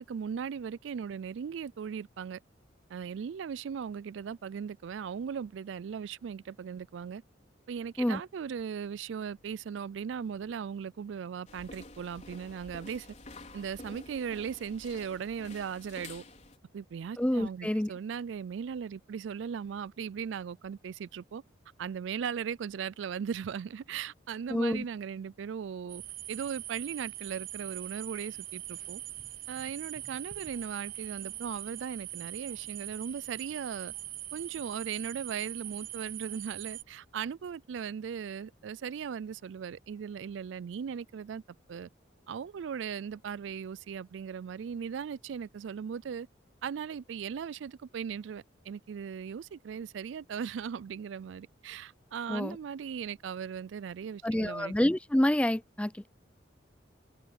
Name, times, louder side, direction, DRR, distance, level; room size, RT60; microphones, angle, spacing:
voice 1, 0.0-2.4 2.9-7.2 7.7-13.1 13.5-16.2 16.7-21.4 21.8-26.0 26.3-29.0 29.5-33.9 34.3-41.4 41.7-41.9 42.3-46.3 46.6-54.7, right 7 dB, 75° right, 0.3 m, -38 dB
sound 1, 11.5-16.6, left 2 dB, 40° left, 4.5 m, -49 dB
voice 2, 17.2-17.9 24.5-24.8 52.3-52.6 54.2-56.1, left 1 dB, 5° left, 0.4 m, -28 dB
sound 2, 25.9-36.8, right 14 dB, 50° right, 0.7 m, -42 dB
head